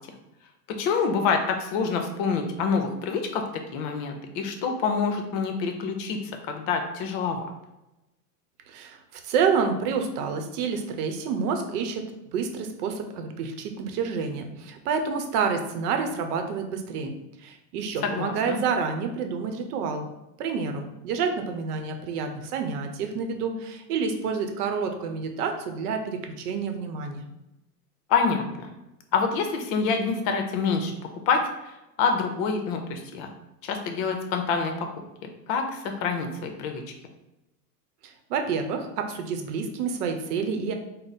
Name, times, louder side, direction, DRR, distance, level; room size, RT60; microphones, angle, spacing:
voice 1, 0.7-3.4 3.7-6.2 6.5-7.4 18.0-18.6 28.1-28.7 29.1-30.9 31.3-33.3 33.6-34.9 35.5-36.8, left 5 dB, 50° left, 4 dB, 0.8 m, -26 dB
voice 2, 8.7-20.1 20.4-27.2 38.0-40.7, right 5 dB, 70° right, 5 dB, 0.8 m, -29 dB
3.7 x 2.1 x 4.1 m, 0.94 s
hypercardioid pair, 115°, 48 cm